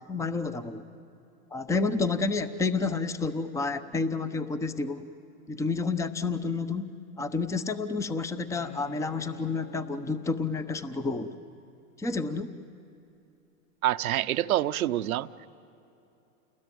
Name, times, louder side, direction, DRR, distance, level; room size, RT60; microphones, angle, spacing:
voice 1, 0.1-0.8 1.5-5.0 5.5-6.9 7.2-11.4 12.0-12.5, left 4 dB, 5° left, 13 dB, 0.8 m, -30 dB
Bowed string instrument, 8.5-12.1, left 2 dB, 65° left, 2.5 m, -50 dB
voice 2, 13.8-15.5, right 13 dB, 90° right, 10 dB, 0.8 m, -27 dB
29.5 x 21.0 x 9.3 m, 2.9 s
hypercardioid pair, 120°, 42 cm